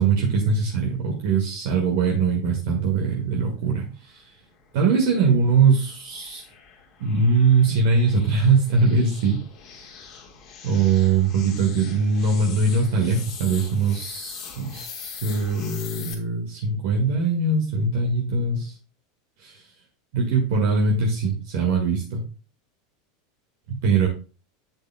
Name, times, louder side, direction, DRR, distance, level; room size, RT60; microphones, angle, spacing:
voice 1, 0.0-4.2 4.7-6.4 7.0-9.4 10.6-18.7 19.4-19.6 20.1-22.2 23.7-24.1, right 4 dB, 60° right, 0 dB, 1.7 m, -21 dB
sound 1, 4.6-16.1, left 7 dB, 45° left, 1.7 m, -42 dB
7.6 x 7.6 x 2.2 m, 0.34 s
figure-of-eight pair, 80°, 0 cm